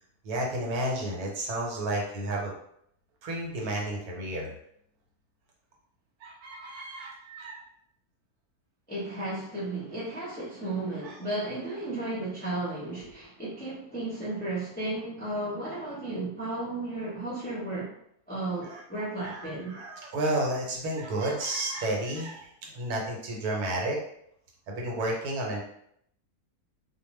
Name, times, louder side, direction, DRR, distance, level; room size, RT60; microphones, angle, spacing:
voice 1, 0.2-2.5 3.2-4.5 6.2-7.6 11.0-11.2 13.1-13.2 18.6-18.8 19.2-24.0 24.7-25.6, right 1 dB, 75° right, -1 dB, 1.2 m, -32 dB
voice 2, 8.9-17.9 18.3-19.7, right 2 dB, 10° left, -8 dB, 0.4 m, -34 dB
2.5 x 2.2 x 3.1 m, 0.71 s
omnidirectional pair, 1.6 m